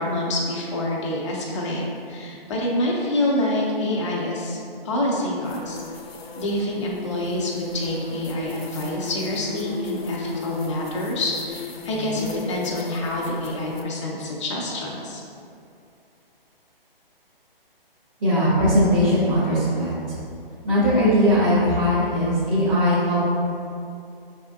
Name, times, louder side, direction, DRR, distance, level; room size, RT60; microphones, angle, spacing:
voice 1, 0.0-4.6 4.8-5.8 6.4-15.2, left 1 dB, 30° left, -3 dB, 0.7 m, -27 dB
sound 1, 5.4-13.8, left 4 dB, 90° left, 0.6 m, -35 dB
voice 2, 18.2-20.1 20.6-23.2, equal, 45° right, -11 dB, 1.5 m, -19 dB
5.6 x 3.6 x 2.3 m, 2.5 s
hypercardioid pair, 155°, 30 cm